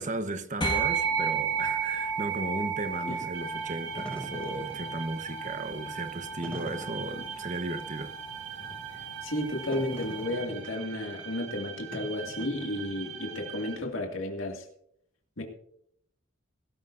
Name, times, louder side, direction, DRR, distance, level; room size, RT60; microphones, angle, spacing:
voice 1, 0.0-8.1, right 2 dB, 40° right, 1.1 m, -35 dB
sound 1, 0.6-10.3, right 6 dB, 25° left, 1.8 m, -33 dB
sound 2, 3.3-13.8, right 9 dB, 85° right, 2.3 m, -42 dB
Wind / Fire, 3.8-13.3, equal, 5° left, 2.1 m, -45 dB
voice 2, 8.9-14.7 15.4-15.5, left 1 dB, 90° left, 2.2 m, -33 dB
21.0 x 13.5 x 2.6 m
head